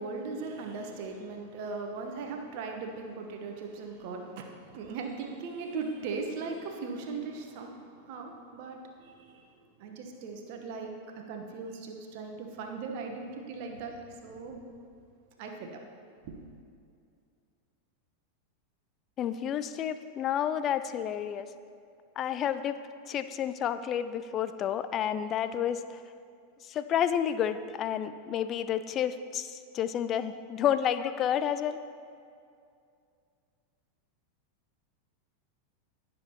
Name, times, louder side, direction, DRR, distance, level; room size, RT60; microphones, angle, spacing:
voice 1, 0.0-9.5 9.8-14.7 15.4-15.8 16.2-16.3, right 4 dB, 45° right, 3 dB, 1.1 m, -39 dB
voice 2, 19.2-21.5 22.2-22.7 23.1-26.0 26.6-31.8, left 9 dB, 30° left, 12 dB, 0.4 m, -30 dB
16.0 x 7.0 x 3.0 m, 2.4 s
figure-of-eight pair, 90°, 0 cm